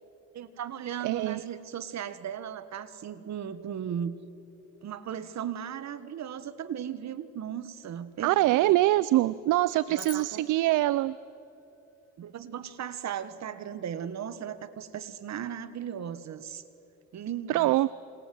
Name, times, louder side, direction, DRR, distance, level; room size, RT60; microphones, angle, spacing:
voice 1, 0.3-4.2 4.8-8.8 9.9-10.4 12.2-16.6 17.1-17.7, right 9 dB, 65° right, 12 dB, 1.6 m, -37 dB
voice 2, 1.0-1.4 8.2-11.2 17.5-17.9, right 16 dB, 85° right, 18 dB, 0.6 m, -24 dB
sound 1, 10.0-12.4, left 7 dB, 50° left, 3.3 m, -49 dB
27.5 x 27.5 x 7.8 m, 2.8 s
cardioid pair, 90°, 30 cm